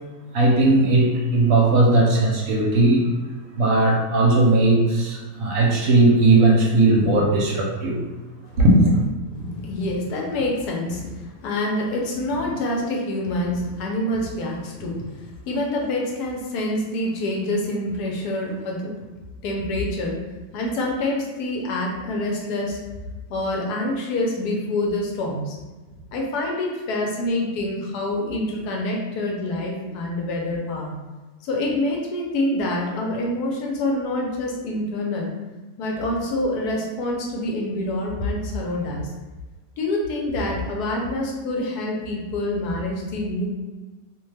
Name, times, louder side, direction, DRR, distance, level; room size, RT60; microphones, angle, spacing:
voice 1, 0.3-3.0 3.6-8.0 8.6-9.0, right 2 dB, 65° right, -2 dB, 1.0 m, -17 dB
voice 2, 9.3-19.0 19.4-20.1 20.5-22.8 23.3-25.5 26.1-30.9 31.4-35.3 35.8-39.1 39.8-43.4, left 1 dB, 85° left, -1 dB, 1.2 m, -26 dB
2.8 x 2.2 x 3.2 m, 1.2 s
omnidirectional pair, 1.6 m